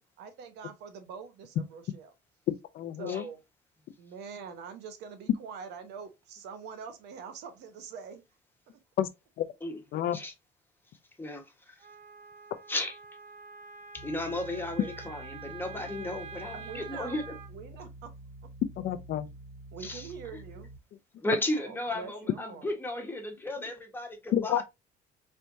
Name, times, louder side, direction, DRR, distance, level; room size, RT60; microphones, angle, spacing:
voice 1, 0.2-2.1 3.0-3.4 4.0-8.2 16.5-17.2 17.5-18.1 19.7-20.7 21.5-22.7, right 6 dB, 80° right, 1.0 m, -44 dB
voice 2, 2.5-3.2 9.0-9.1 9.4-9.5 9.9-10.2 18.8-19.3 24.3-24.6, left 11 dB, 60° left, 0.5 m, -29 dB
voice 3, 11.2-11.7 12.7-13.0 13.9-17.2 19.8-20.1 21.2-24.6, left 1 dB, 10° left, 1.3 m, -34 dB
Wind instrument woodwind instrument, 11.8-17.5, right 5 dB, 55° right, 0.8 m, -46 dB
sound 1, 13.9-20.8, right 1 dB, 40° left, 1.0 m, -48 dB
4.4 x 3.3 x 2.6 m
cardioid pair, 110°, 17 cm